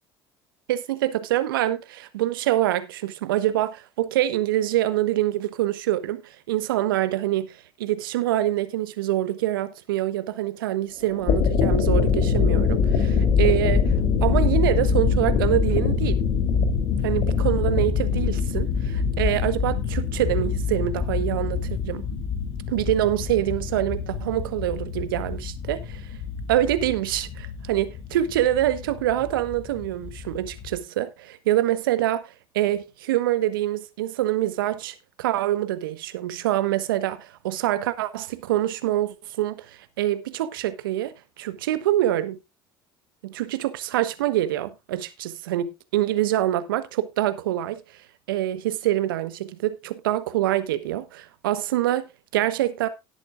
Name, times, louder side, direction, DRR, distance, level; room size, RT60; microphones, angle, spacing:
voice 1, 0.7-13.9 14.2-16.2 17.0-22.0 22.7-26.1 26.5-42.4 43.2-47.8 48.3-52.9, right 13 dB, 75° right, 1.3 m, -25 dB
sound 1, 11.1-30.8, left 6 dB, 60° left, 3.2 m, -24 dB
18.0 x 8.4 x 2.5 m
hypercardioid pair, 65°, 12 cm